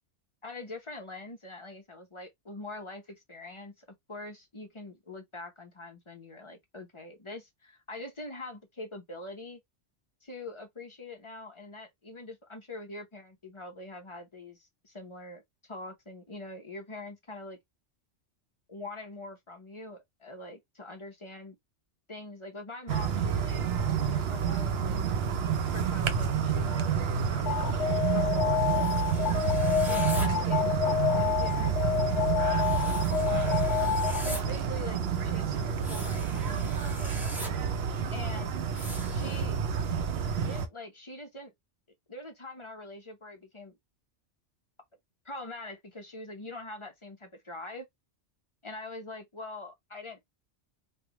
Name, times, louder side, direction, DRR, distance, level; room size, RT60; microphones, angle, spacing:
voice 1, 0.4-9.6 10.2-17.6 18.7-21.6 22.1-23.7 24.0-25.0 25.7-27.0 27.3-28.9 29.9-30.7 31.1-32.4 33.3-33.6 34.2-37.2 38.1-38.5 39.1-39.6 40.2-41.5 42.1-43.8 45.2-47.9 48.6-50.2, left 2 dB, 30° left, 0.8 m, -43 dB
sound 1, 22.9-40.7, right 7 dB, 65° right, 0.8 m, -29 dB
Alarm, 27.5-34.5, left 9 dB, 75° left, 0.9 m, -29 dB
sound 2, 28.7-30.3 32.5-34.4 35.7-37.5 38.7-39.4, equal, ahead, 0.7 m, -43 dB
3.3 x 2.3 x 2.9 m
omnidirectional pair, 1.2 m